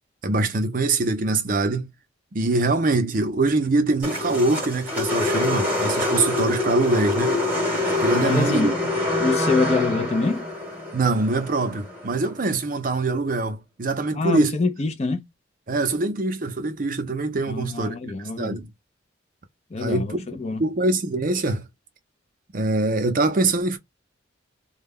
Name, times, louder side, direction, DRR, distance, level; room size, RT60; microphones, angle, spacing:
voice 1, 0.2-1.9 2.3-7.4 8.0-8.8 10.9-14.6 15.7-18.7 19.8-20.3 20.6-21.7 22.5-23.8, right 2 dB, 45° right, 0.6 m, -23 dB
sound 1, 4.0-12.3, left 2 dB, 10° right, 1.1 m, -25 dB
voice 2, 8.1-8.7 9.2-10.5 14.1-15.3 17.5-18.6 19.7-20.6, left 3 dB, 35° left, 0.4 m, -25 dB
2.2 x 2.1 x 3.4 m
head